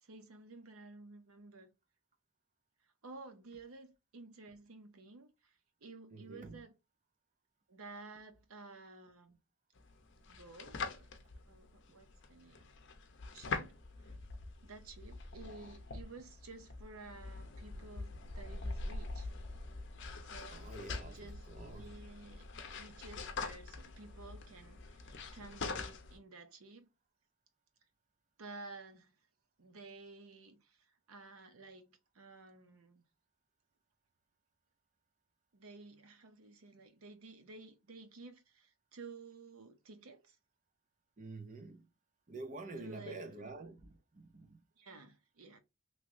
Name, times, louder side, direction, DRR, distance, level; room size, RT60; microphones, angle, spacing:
voice 1, 0.0-1.7 2.8-6.7 7.7-9.4 10.3-11.2 11.4-12.7 13.3-14.1 14.6-19.3 20.2-22.4 22.8-26.9 28.4-29.2 29.6-33.0 35.5-40.4 42.8-43.6 44.8-45.6, right 3 dB, 80° right, 0.8 m, -53 dB
voice 2, 6.1-6.6 20.5-21.9 41.2-41.9 42.3-44.6, right 2 dB, 35° right, 0.5 m, -48 dB
sound 1, 9.8-26.2, left 3 dB, 55° left, 0.6 m, -44 dB
3.2 x 3.0 x 2.6 m
head